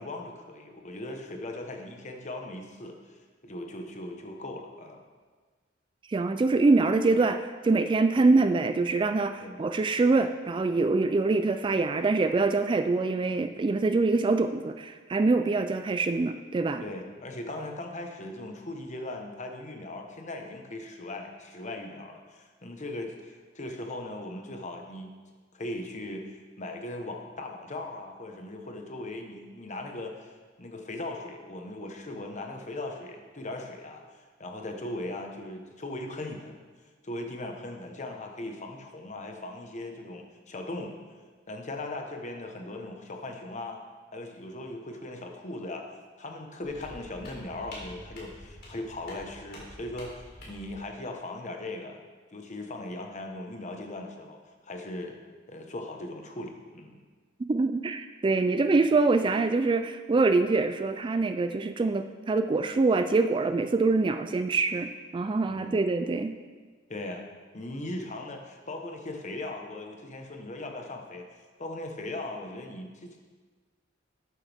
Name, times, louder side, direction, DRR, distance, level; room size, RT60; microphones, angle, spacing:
voice 1, 0.0-5.0 9.4-9.6 16.8-25.1 25.5-34.0 34.4-36.5 37.0-41.0 41.5-43.8 44.1-45.8 46.2-52.0 52.3-54.4 54.6-55.2 55.5-57.0 65.5-65.8 66.9-67.3 67.5-71.3 71.6-73.3, left 2 dB, 40° left, 3 dB, 1.2 m, -39 dB
voice 2, 6.1-16.9 57.5-66.3, right 3 dB, 25° right, 8 dB, 0.3 m, -25 dB
sound 1, 46.6-50.7, left 1 dB, 55° left, 3.4 m, -47 dB
12.0 x 9.3 x 3.5 m, 1.4 s
head